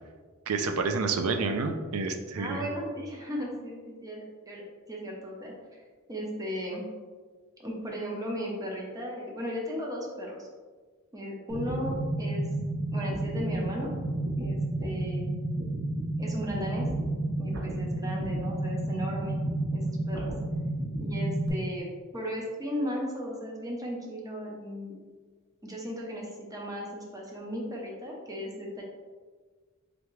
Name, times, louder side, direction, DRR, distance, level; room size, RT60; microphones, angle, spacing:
voice 1, 0.5-2.6, right 4 dB, 90° right, 6 dB, 0.5 m, -29 dB
voice 2, 2.4-4.6 4.9-5.5 6.1-6.8 7.6-10.5 11.1-11.9 12.2-12.5 12.9-13.9 14.4-15.3 16.2-16.9 17.4-19.4 19.7-20.3 21.0-21.9 22.1-24.9 25.6-28.8, equal, 15° right, -2 dB, 0.8 m, -36 dB
sound 1, 11.5-21.5, right 1 dB, 60° right, 0.8 m, -31 dB
3.8 x 3.4 x 3.2 m, 1.5 s
head